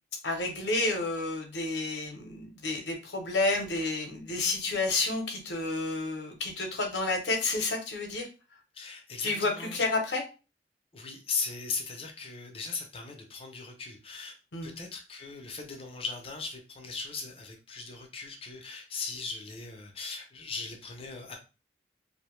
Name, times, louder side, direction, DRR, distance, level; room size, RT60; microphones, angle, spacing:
voice 1, 0.2-8.3 9.2-10.2 14.5-14.7, left 3 dB, 75° left, 3 dB, 0.7 m, -30 dB
voice 2, 8.7-9.8 10.9-14.3 14.6-21.4, left 4 dB, 30° left, 2 dB, 0.6 m, -38 dB
2.6 x 2.1 x 3.0 m, 0.32 s
head